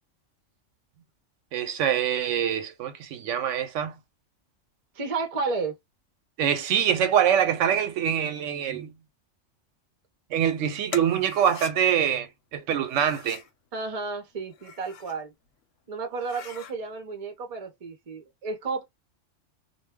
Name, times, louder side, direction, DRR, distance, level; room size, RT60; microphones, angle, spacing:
voice 1, 1.5-3.9 6.4-8.9 10.3-13.4, right 9 dB, 90° right, 1.0 m, -24 dB
voice 2, 4.9-5.7 13.7-15.3 15.9-18.8, right 4 dB, 40° right, 0.6 m, -32 dB
sound 1, 10.9-11.7 12.8-13.5 14.4-15.2 15.6-15.7 16.1-16.7, left 7 dB, 85° left, 1.0 m, -41 dB
2.2 x 2.1 x 3.5 m
omnidirectional pair, 1.3 m